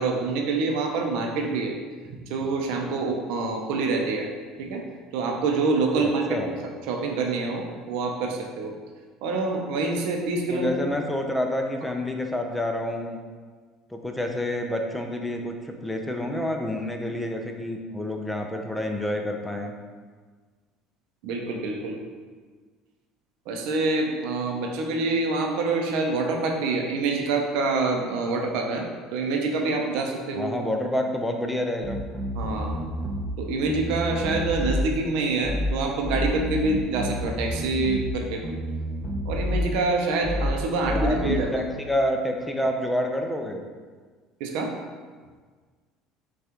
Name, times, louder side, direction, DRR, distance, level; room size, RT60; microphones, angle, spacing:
voice 1, 0.0-1.7 2.3-4.3 4.6-4.8 5.1-6.4 6.9-8.7 9.2-10.7 21.2-22.0 23.5-28.8 29.1-30.5 32.3-32.8 33.4-38.4 39.2-41.5 44.4-44.7, right 3 dB, 70° right, 2 dB, 0.6 m, -26 dB
voice 2, 6.0-6.5 10.5-13.2 13.9-19.7 30.4-32.0 40.9-43.6, left 1 dB, 10° left, 3 dB, 0.5 m, -28 dB
sound 1, 31.8-33.4 33.6-34.9 35.4-35.7 36.0-38.2 38.4-39.7 40.2-40.5 40.8-41.4, equal, 25° left, 0.9 m, -29 dB
5.9 x 2.4 x 2.9 m, 1.5 s
hypercardioid pair, 75°, 0 cm